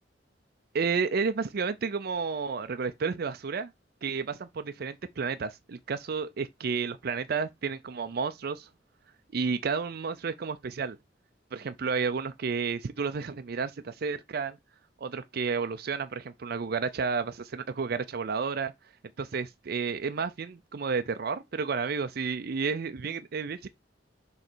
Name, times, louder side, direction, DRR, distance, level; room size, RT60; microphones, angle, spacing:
voice 1, 0.7-3.7 4.0-8.7 9.3-11.0 11.5-14.6 15.0-18.7 19.2-23.7, right 5 dB, 55° right, 0.5 m, -31 dB
6.5 x 3.2 x 4.4 m
head